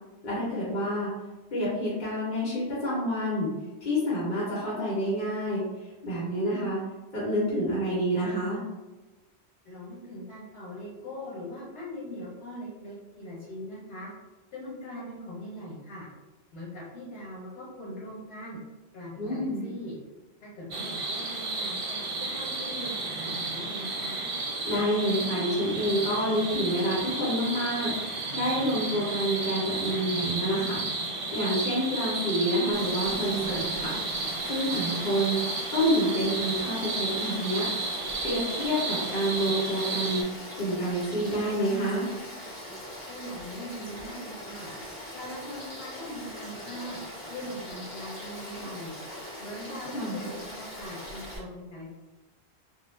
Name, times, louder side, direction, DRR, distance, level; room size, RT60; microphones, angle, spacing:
voice 1, 0.2-1.1 1.5-3.5 3.8-6.8 7.1-8.6 19.2-19.6 24.6-33.9 34.5-35.4 35.7-37.7 38.2-40.2 40.6-42.0 49.9-50.2, equal, 55° left, -7 dB, 1.0 m, -28 dB
voice 2, 9.6-14.1 14.5-16.1 16.5-18.6 18.9-19.9 20.4-22.9 23.2-24.3 43.1-44.7 45.1-47.0 47.3-48.9 49.4-51.9, left 1 dB, 80° left, -8 dB, 1.0 m, -41 dB
sound 1, 20.7-40.2, right 3 dB, 65° right, 0.7 m, -32 dB
Frog / Stream, 32.7-51.4, left 1 dB, 20° left, 1.2 m, -41 dB
2.4 x 2.0 x 3.0 m, 1.1 s
omnidirectional pair, 1.1 m